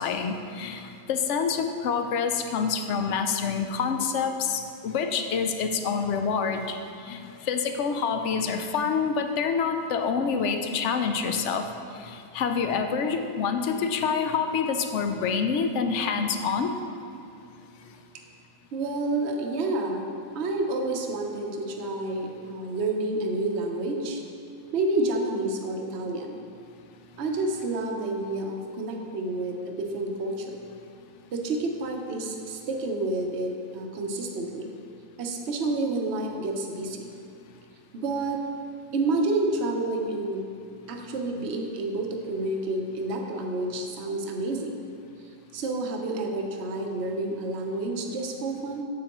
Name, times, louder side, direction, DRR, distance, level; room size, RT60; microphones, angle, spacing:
voice 1, 0.0-6.8 7.0-11.6 12.0-16.7, left 6 dB, 65° left, 6 dB, 0.7 m, -27 dB
voice 2, 18.7-20.1 20.3-24.2 24.7-26.4 27.2-30.6 31.3-34.7 35.2-37.1 37.9-38.4 38.9-40.4 40.9-44.8 45.5-48.8, right 2 dB, 50° right, 2 dB, 0.9 m, -29 dB
8.6 x 7.6 x 3.0 m, 2.5 s
omnidirectional pair, 1.6 m